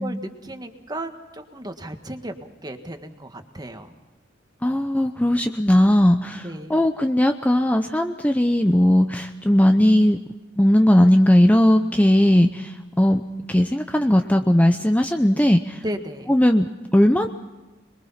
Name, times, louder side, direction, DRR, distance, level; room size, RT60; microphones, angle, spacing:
voice 1, 0.0-3.9 6.4-6.8 15.8-16.3, right 1 dB, 20° right, 7 dB, 1.7 m, -35 dB
voice 2, 4.6-10.2 10.6-15.8 16.3-17.3, left 1 dB, 10° left, 6 dB, 0.7 m, -18 dB
26.0 x 22.0 x 5.8 m, 1.2 s
head